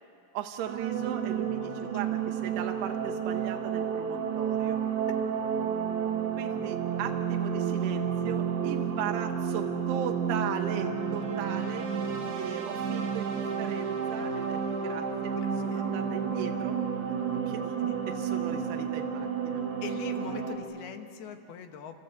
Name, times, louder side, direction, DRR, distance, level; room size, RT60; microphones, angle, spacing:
voice 1, 0.3-4.8 6.4-11.9 12.4-15.4 15.6-16.8 17.2-19.6, right 10 dB, 85° right, 3 dB, 2.9 m, -38 dB
sound 1, 0.6-20.6, right 7 dB, 50° right, 3.1 m, -31 dB
voice 2, 19.8-22.0, left 8 dB, 75° left, 6 dB, 3.1 m, -42 dB
28.5 x 26.5 x 7.8 m, 2.4 s
omnidirectional pair, 4.7 m